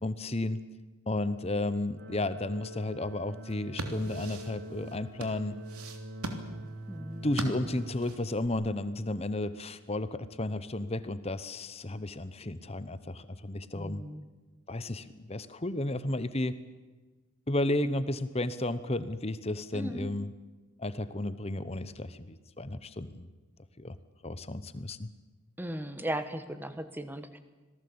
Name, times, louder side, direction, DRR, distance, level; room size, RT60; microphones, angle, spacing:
voice 1, 0.0-0.6 1.1-5.6 7.2-14.0 14.7-16.6 17.5-20.3 20.8-23.3 23.8-24.0 24.2-25.1, left 1 dB, 25° left, 13 dB, 1.0 m, -33 dB
sound 1, 2.0-7.9, right 1 dB, 50° right, 2.8 m, -43 dB
sound 2, 3.4-8.5, right 2 dB, 90° right, 3.1 m, -41 dB
voice 2, 6.9-7.3 13.7-14.2 19.7-20.1 25.6-27.4, right 1 dB, 10° right, 10 dB, 1.6 m, -37 dB
26.5 x 18.5 x 8.8 m, 1.3 s
head